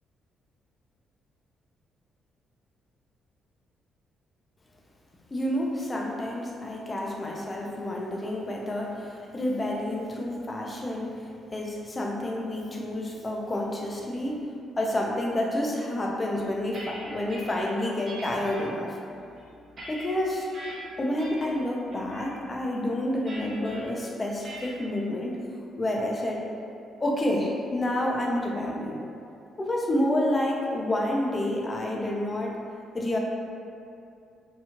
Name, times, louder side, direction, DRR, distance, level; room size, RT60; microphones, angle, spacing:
voice 1, 5.3-19.0 19.9-20.5 21.0-25.4 25.8-26.5 27.0-29.0 29.6-32.6 32.9-33.2, left 1 dB, 25° left, -2 dB, 0.4 m, -29 dB
sound 1, 16.3-17.5 18.1-18.6 19.2-20.7 21.2-21.6 21.9-22.3 23.3-23.8 24.4-24.8, right 1 dB, 50° right, 0.7 m, -42 dB
2.8 x 2.3 x 2.8 m, 2.5 s
cardioid pair, 90°, 0 cm